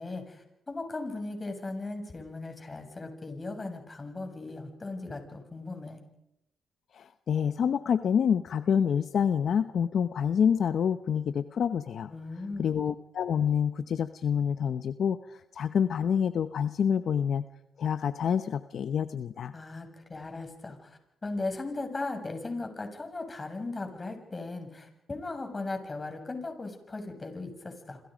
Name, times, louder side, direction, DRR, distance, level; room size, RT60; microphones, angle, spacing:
voice 1, 0.0-6.0 12.1-12.8 19.5-28.0, left 3 dB, 30° left, 5 dB, 7.0 m, -37 dB
voice 2, 6.9-12.1 12.6-17.4 17.8-19.5, left 7 dB, 65° left, 11 dB, 0.9 m, -27 dB
27.5 x 27.0 x 5.2 m, 0.82 s
cardioid pair, 75°, 0 cm